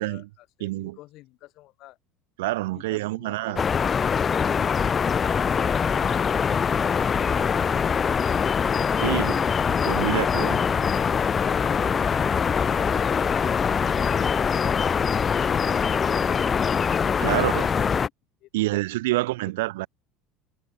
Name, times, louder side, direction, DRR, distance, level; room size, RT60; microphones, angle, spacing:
voice 1, 0.0-2.0 18.4-18.8 19.1-19.2, left 18 dB, 50° left, 7.3 m, -47 dB
voice 2, 0.6-1.0 2.4-3.6 9.0-9.4 9.7-10.6 17.2-17.7 18.5-19.9, right 19 dB, 65° right, 3.3 m, -27 dB
sound 1, 3.6-18.1, left 6 dB, 30° left, 0.7 m, -23 dB
figure-of-eight pair, 70°, 0 cm